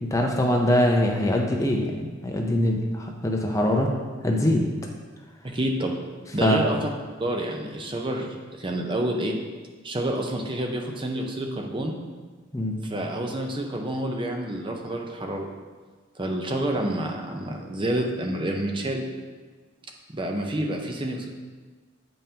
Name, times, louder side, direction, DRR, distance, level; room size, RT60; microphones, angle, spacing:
voice 1, 0.0-4.7 6.4-6.7 12.5-12.8, left 1 dB, 15° left, 1 dB, 0.6 m, -23 dB
voice 2, 5.4-5.9 6.3-6.9 7.2-9.4 9.8-12.0 12.8-15.5 16.2-19.0 20.1-21.3, right 1 dB, 25° right, 2 dB, 0.6 m, -28 dB
8.9 x 5.4 x 2.8 m, 1.4 s
head